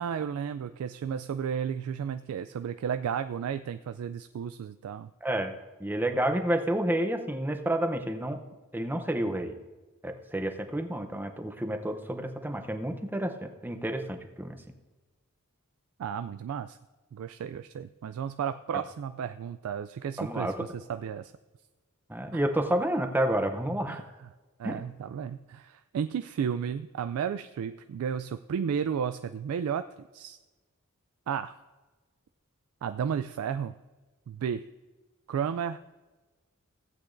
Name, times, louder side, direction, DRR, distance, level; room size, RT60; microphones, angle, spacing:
voice 1, 0.0-5.1 16.0-16.8 17.1-21.3 22.3-22.4 23.9-24.3 24.6-29.8 30.1-30.4 31.3-31.5 32.8-33.7 34.3-34.6 35.3-35.8, right 7 dB, 75° right, 10 dB, 0.3 m, -33 dB
voice 2, 5.2-8.4 8.7-9.5 10.0-14.6 20.2-20.5 22.1-24.0 24.6-24.8, right 1 dB, 10° right, 6 dB, 0.6 m, -30 dB
16.0 x 8.4 x 2.6 m, 1.2 s
head